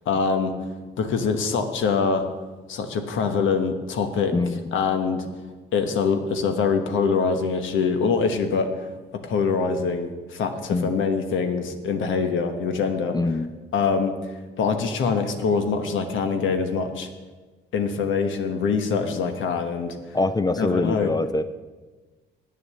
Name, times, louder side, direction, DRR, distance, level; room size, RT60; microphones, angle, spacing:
voice 1, 0.1-0.5 1.0-2.2 2.7-4.3 4.7-5.3 5.7-8.7 9.1-13.2 13.7-14.1 14.6-17.1 17.7-19.9 20.6-21.1, left 5 dB, 75° left, 7 dB, 1.1 m, -24 dB
voice 2, 4.3-4.6 10.7-10.9 13.1-13.5 20.1-21.4, left 3 dB, 20° left, 11 dB, 0.4 m, -24 dB
9.0 x 6.9 x 7.5 m, 1.3 s
cardioid pair, 90°, 20 cm